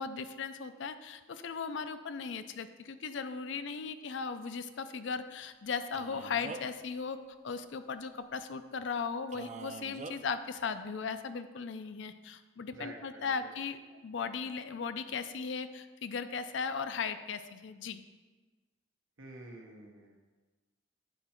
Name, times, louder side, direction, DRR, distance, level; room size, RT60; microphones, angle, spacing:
voice 1, 0.0-18.0, left 5 dB, 70° left, 11 dB, 0.5 m, -37 dB
Male speech man speaking, 5.9-6.8 9.3-10.2, right 3 dB, 35° right, 0.4 m, -44 dB
voice 2, 12.7-13.5 19.2-20.2, right 2 dB, 85° right, 0 dB, 1.3 m, -49 dB
9.0 x 4.8 x 4.4 m, 1.3 s
head